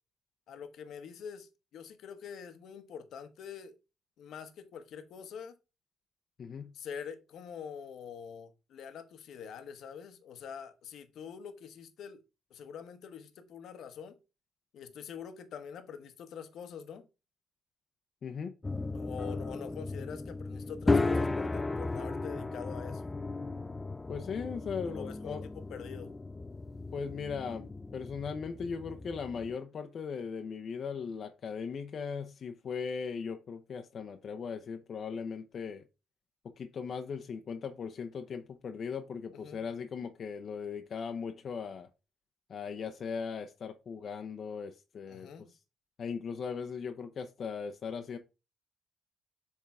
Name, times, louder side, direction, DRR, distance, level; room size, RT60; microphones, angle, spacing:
voice 1, 0.5-3.8 4.2-5.5 6.7-12.2 12.5-14.1 14.7-17.1 18.9-23.1 24.8-25.4 25.7-26.1 39.3-39.6 45.1-45.5, left 7 dB, 75° left, 0.9 m, -45 dB
voice 2, 6.4-6.7 18.2-18.5 24.1-25.4 26.9-35.8 36.6-41.9 42.5-45.3 46.0-48.2, left 6 dB, 55° left, 0.7 m, -38 dB
sound 1, 18.6-29.6, left 3 dB, 20° left, 0.3 m, -35 dB
7.3 x 3.6 x 3.6 m
cardioid pair, 90°, 0 cm